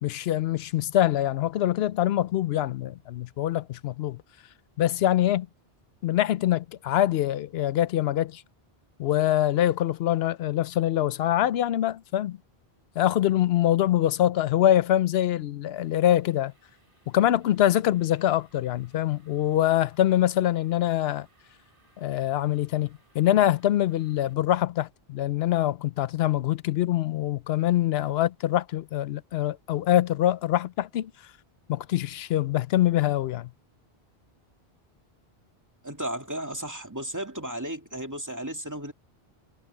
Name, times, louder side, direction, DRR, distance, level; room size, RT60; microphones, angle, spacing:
voice 1, 0.0-4.2 4.8-5.5 6.0-8.4 9.0-12.4 13.0-16.5 17.1-21.3 22.0-31.1 31.7-33.5, left 12 dB, 75° left, 0.8 m, -24 dB
sound 1, 15.8-24.3, right 2 dB, 55° right, 7.9 m, -64 dB
voice 2, 35.8-38.9, right 1 dB, 15° right, 2.3 m, -34 dB
omnidirectional pair, 1.1 m